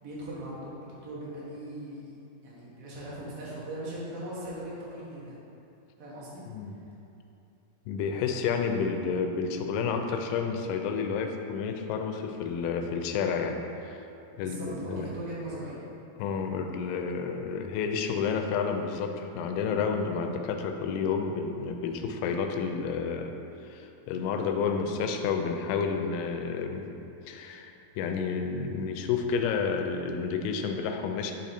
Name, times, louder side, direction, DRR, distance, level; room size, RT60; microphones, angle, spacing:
voice 1, 0.0-2.2 2.4-5.4 6.0-6.4 14.3-15.8, right 1 dB, 55° right, -7 dB, 1.7 m, -39 dB
voice 2, 7.9-14.0 14.4-15.1 16.2-23.3 23.6-26.9 27.3-31.3, left 5 dB, 90° left, 5 dB, 2.6 m, -30 dB
9.2 x 3.1 x 4.2 m, 2.7 s
omnidirectional pair, 4.5 m